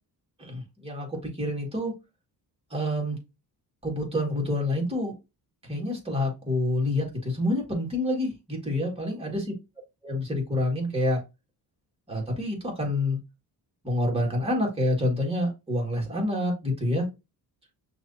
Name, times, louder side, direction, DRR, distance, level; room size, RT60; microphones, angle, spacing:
voice 1, 0.4-1.9 2.7-3.2 3.8-5.1 5.7-9.5 10.0-11.2 12.1-13.2 13.8-17.1, left 1 dB, 15° right, -1 dB, 1.9 m, -27 dB
6.0 x 2.7 x 2.7 m, 0.24 s
cardioid pair, 130°, 40 cm